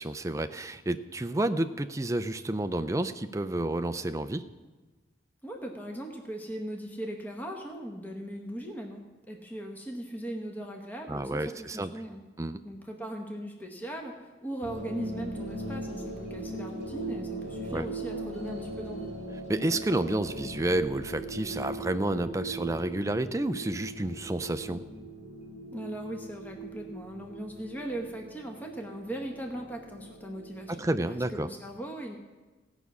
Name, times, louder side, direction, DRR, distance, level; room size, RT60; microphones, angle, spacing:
voice 1, 0.0-4.4 11.1-11.9 12.4-12.6 17.7-17.9 19.5-24.8 30.7-31.5, right 1 dB, 15° right, 10 dB, 0.4 m, -30 dB
voice 2, 5.4-12.2 12.6-19.1 25.7-32.2, right 1 dB, 10° left, 1 dB, 1.0 m, -39 dB
sound 1, 14.6-31.0, right 1 dB, 40° left, 3.9 m, -40 dB
16.0 x 6.1 x 8.2 m, 1.2 s
head